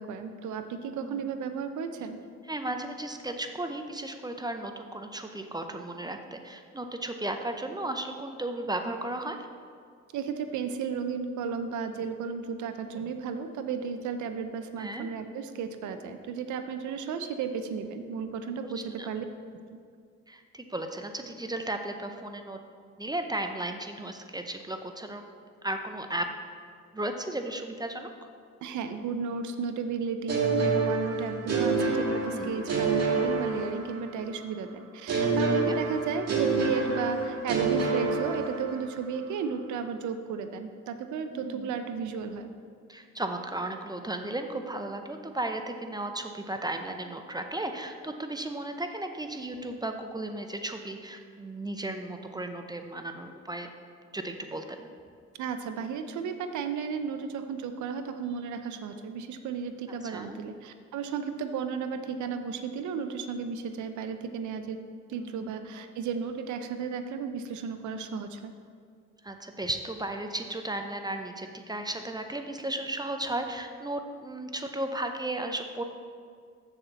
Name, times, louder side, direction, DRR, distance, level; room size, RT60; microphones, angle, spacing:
voice 1, 0.0-2.2 10.1-19.2 28.6-42.5 55.4-64.8 65.1-68.5, right 6 dB, 75° right, 8 dB, 0.6 m, -34 dB
voice 2, 0.9-1.2 2.5-9.5 14.8-15.1 18.6-18.7 19.0-19.1 20.3-22.6 23.0-25.2 25.6-26.3 26.9-28.3 32.3-32.6 35.6-35.8 41.3-41.7 42.9-53.7 54.1-54.9 60.0-60.4 65.2-65.5 69.2-75.8, right 1 dB, 15° right, 5 dB, 0.6 m, -35 dB
sound 1, 30.3-34.2 35.1-38.9, right 3 dB, 55° right, 2.0 m, -27 dB
7.0 x 4.4 x 6.8 m, 2.1 s
cardioid pair, 90°, 30 cm